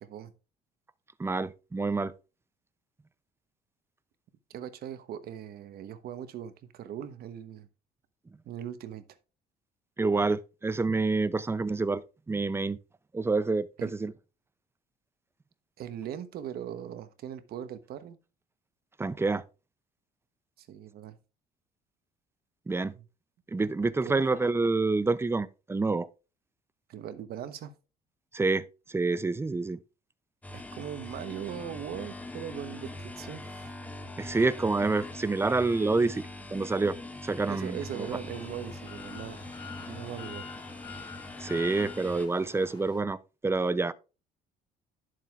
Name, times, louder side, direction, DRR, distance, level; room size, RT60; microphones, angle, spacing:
voice 1, 0.0-0.3 4.5-7.7 8.4-9.0 13.8-13.9 15.8-18.2 20.6-21.2 22.9-23.0 23.6-23.7 24.0-24.2 26.9-27.7 30.5-33.7 37.5-39.4 39.9-40.4, right 9 dB, 65° right, 1.1 m, -40 dB
voice 2, 1.2-2.1 10.0-12.0 12.3-12.8 13.1-14.1 19.0-19.4 22.7-22.9 23.5-26.1 28.3-28.6 28.9-29.8 34.2-36.2 36.5-37.0 37.2-38.1 41.4-43.2 43.4-43.9, right 3 dB, 15° right, 0.5 m, -27 dB
sound 1, 30.4-42.3, left 1 dB, 10° left, 1.1 m, -42 dB
sound 2, 37.8-43.0, left 6 dB, 25° left, 1.4 m, -46 dB
10.0 x 7.6 x 2.4 m
cardioid pair, 110°, 17 cm